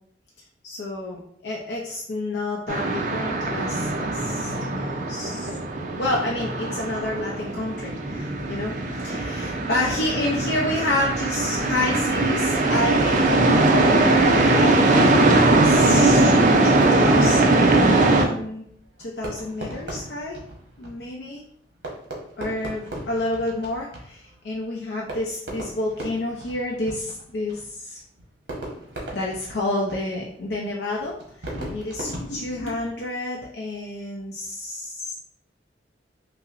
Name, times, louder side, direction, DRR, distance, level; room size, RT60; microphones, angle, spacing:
voice 1, 0.6-5.5 5.9-16.3 16.6-18.6 19.0-20.4 20.8-21.4 22.4-28.0 29.1-35.1, left 1 dB, 65° left, -2 dB, 0.4 m, -29 dB
sound 1, 2.7-18.2, right 2 dB, 40° right, 0.4 m, -20 dB
Fireworks, 18.3-33.2, right 1 dB, 60° right, 0.9 m, -39 dB
5.4 x 2.0 x 2.5 m, 0.66 s
head